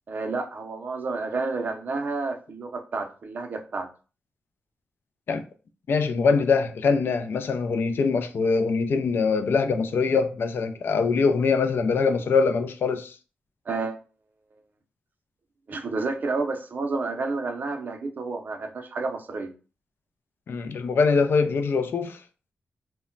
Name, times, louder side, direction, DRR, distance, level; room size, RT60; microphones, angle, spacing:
voice 1, 0.1-3.9 13.7-14.0 15.7-19.5, right 3 dB, 50° right, 0.5 m, -30 dB
voice 2, 5.9-13.2 20.5-22.2, left 4 dB, 65° left, 0.4 m, -23 dB
2.1 x 2.1 x 3.7 m
wide cardioid pair, 130°, 4 cm